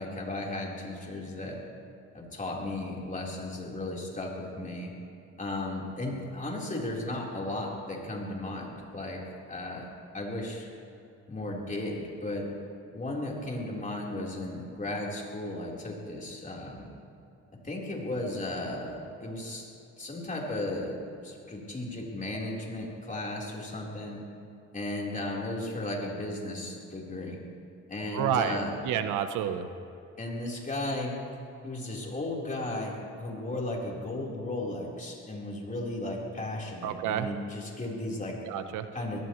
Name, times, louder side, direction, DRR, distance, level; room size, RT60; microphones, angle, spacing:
voice 1, 0.0-1.6 2.1-4.9 5.4-9.2 9.5-9.9 10.1-10.7 11.3-12.5 12.9-16.9 17.6-19.7 20.0-24.2 24.7-27.4 27.9-28.7 30.2-31.1 31.6-38.4 38.9-39.2, left 1 dB, 25° left, -3 dB, 4.1 m, -35 dB
voice 2, 28.1-28.6 28.8-29.7 36.8-37.3 38.5-38.9, right 9 dB, 90° right, 9 dB, 1.0 m, -29 dB
23.0 x 18.0 x 3.2 m, 2.7 s
cardioid pair, 90°, 30 cm